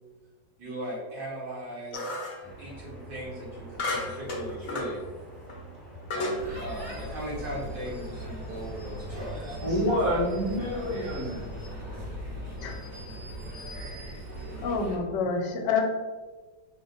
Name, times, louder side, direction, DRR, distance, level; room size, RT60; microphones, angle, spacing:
voice 1, 0.6-2.2 2.6-5.0 6.1-9.6, right 1 dB, 65° right, -7 dB, 2.2 m, -38 dB
sound 1, 1.9-2.5 3.8-4.9 5.5-5.6 6.1-6.4, left 2 dB, 50° left, 0.9 m, -32 dB
sound 2, 2.4-12.1, right 1 dB, ahead, 0.5 m, -46 dB
sound 3, 6.4-15.0, equal, 30° right, 1.1 m, -39 dB
voice 2, 9.1-11.4, equal, 50° right, -12 dB, 2.0 m, -28 dB
voice 3, 13.7-14.2 14.6-15.8, left 5 dB, 75° left, 3 dB, 1.3 m, -29 dB
4.9 x 2.1 x 3.9 m, 1.3 s
omnidirectional pair, 1.9 m